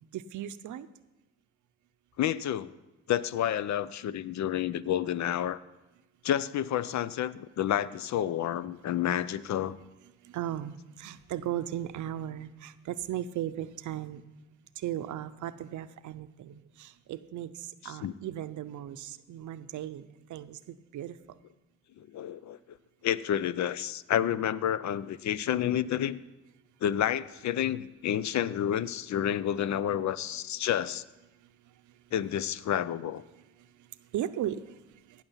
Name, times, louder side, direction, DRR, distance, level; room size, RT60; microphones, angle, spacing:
voice 1, 0.1-0.9 10.3-14.2 14.8-17.5 17.8-21.1 34.1-34.6, right 11 dB, 80° right, 13 dB, 0.6 m, -36 dB
voice 2, 2.2-2.7 3.1-5.6 6.2-9.8 17.8-18.1 22.0-22.8 23.0-26.2 26.8-31.0 32.1-33.2, left 10 dB, 70° left, 17 dB, 0.5 m, -30 dB
17.0 x 6.1 x 5.6 m, 1.0 s
cardioid pair, 65°, 29 cm